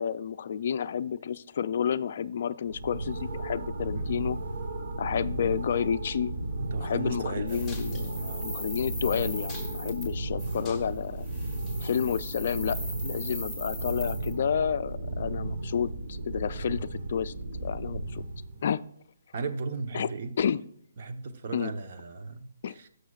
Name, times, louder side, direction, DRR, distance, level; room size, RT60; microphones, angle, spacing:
voice 1, 0.0-4.4 5.0-6.3 6.8-11.3 11.8-17.3 17.6-18.2 18.6-18.8 19.9-20.1 20.4-20.6 21.5-21.7 22.6-22.8, left 8 dB, 50° left, 14 dB, 0.3 m, -30 dB
sound 1, 2.7-18.7, right 2 dB, 65° right, 1.2 m, -35 dB
voice 2, 6.6-7.7 8.1-8.6 9.6-10.0 19.3-20.3 21.0-22.9, right 4 dB, 50° right, 8 dB, 0.8 m, -36 dB
sound 2, 7.5-10.1 10.4-10.6 11.2-14.3, equal, 15° right, 2.1 m, -41 dB
sound 3, 7.7-8.5 8.9-9.0 9.3-10.0 10.4-11.1 11.6-11.8 12.7-12.9, left 3 dB, 5° left, 1.0 m, -48 dB
18.5 x 6.5 x 2.4 m, 0.68 s
hypercardioid pair, 160°, 0 cm